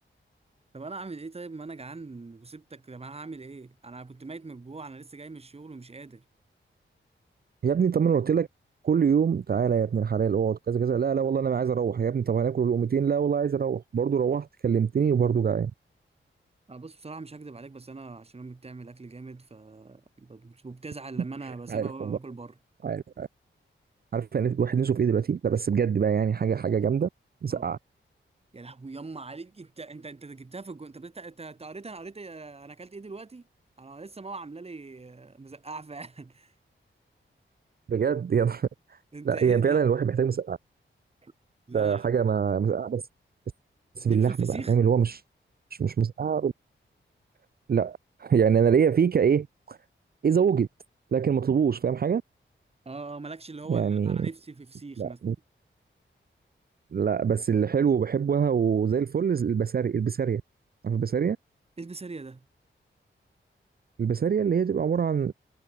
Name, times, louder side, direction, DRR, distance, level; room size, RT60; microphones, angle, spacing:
voice 1, 0.7-6.2 16.7-22.6 27.5-27.7 28.5-33.4 33.8-36.5 39.1-39.8 41.2-41.3 41.7-42.1 44.1-44.8 52.9-55.2 61.8-62.4, right 3 dB, 30° right, 3.5 m, -41 dB
voice 2, 7.6-8.5 8.8-15.7 21.7-22.2 22.8-23.3 24.1-27.1 27.4-27.8 37.9-39.0 39.2-40.6 41.7-43.0 44.0-45.2 45.8-46.5 47.7-49.8 50.2-50.7 51.1-52.2 53.7-54.3 55.0-55.4 56.9-60.4 60.8-61.4 64.0-65.3, right 7 dB, 50° right, 0.6 m, -24 dB
wide cardioid pair, 165°, 21 cm